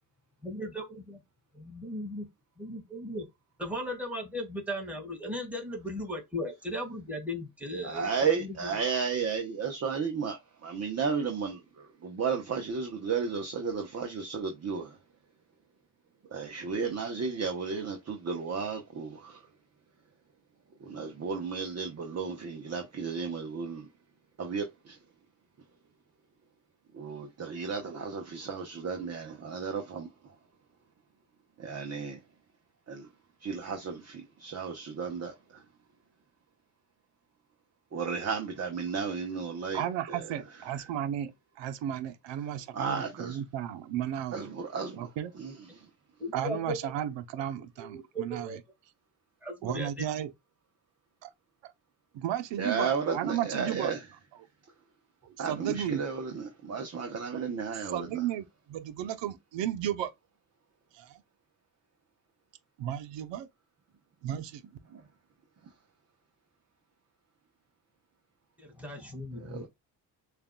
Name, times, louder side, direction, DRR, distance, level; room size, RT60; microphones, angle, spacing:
voice 1, 0.4-1.2 1.6-2.2 2.6-3.3 3.6-8.7 46.2-46.9 47.8-48.6 49.4-50.1 68.6-69.7, equal, 5° right, 1.9 m, -37 dB
voice 2, 7.8-15.0 16.3-19.5 20.8-23.9 24.4-25.0 26.9-30.3 31.6-32.2 32.9-33.1 33.4-35.6 37.9-40.9 42.7-43.4 44.3-45.1 45.3-45.9 52.6-54.1 55.4-58.2 64.9-65.0 69.4-69.7, right 5 dB, 35° right, 0.9 m, -34 dB
voice 3, 39.7-41.3 41.6-44.5 45.0-45.3 46.3-48.5 49.6-50.3 51.2-51.3 51.6-51.7 52.1-53.9 55.2-56.0 57.9-60.1 60.9-61.2 62.8-63.5 64.2-64.6, right 11 dB, 80° right, 0.8 m, -34 dB
6.7 x 2.5 x 2.2 m
cardioid pair, 95°, 43 cm